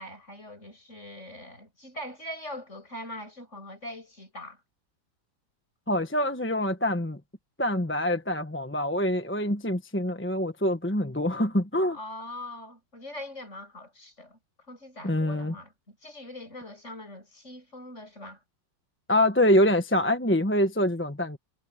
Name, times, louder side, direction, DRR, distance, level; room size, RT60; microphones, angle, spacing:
voice 1, 0.0-4.6 11.9-14.4 14.7-18.4, left 1 dB, 40° left, 7.6 m, -42 dB
voice 2, 5.9-7.2 7.6-12.0 15.0-15.5 19.1-21.4, left 1 dB, 10° left, 1.0 m, -25 dB
omnidirectional pair, 1.9 m